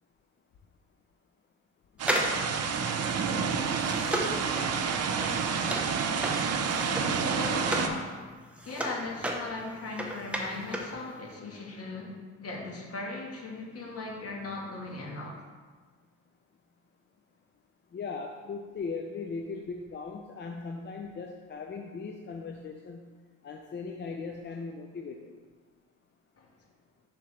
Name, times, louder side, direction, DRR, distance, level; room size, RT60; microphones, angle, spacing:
sound 1, 2.0-8.0 8.3-11.0 11.2-11.3, equal, 5° right, 0.9 m, -34 dB
sound 2, 2.0-7.9, right 6 dB, 55° right, 0.7 m, -29 dB
voice 1, 6.3-6.7 7.2-8.1 8.6-15.4 26.4-26.5, left 3 dB, 50° left, -1 dB, 1.5 m, -39 dB
voice 2, 17.9-23.1 23.4-25.4, left 4 dB, 35° left, 3 dB, 0.5 m, -38 dB
6.7 x 5.8 x 3.3 m, 1.5 s
cardioid pair, 90°, 30 cm